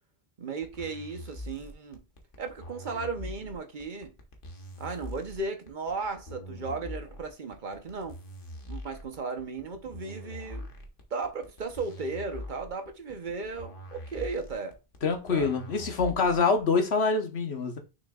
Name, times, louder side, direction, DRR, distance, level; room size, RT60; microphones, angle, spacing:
voice 1, 0.4-2.0 2.4-4.1 4.8-8.2 8.7-10.7 11.1-14.8 15.3-15.5, right 4 dB, 50° right, 1.1 m, -35 dB
sound 1, 0.6-16.6, left 1 dB, 55° left, 1.4 m, -43 dB
voice 2, 15.0-17.8, left 4 dB, 85° left, 1.4 m, -25 dB
6.3 x 6.1 x 2.4 m
omnidirectional pair, 1.1 m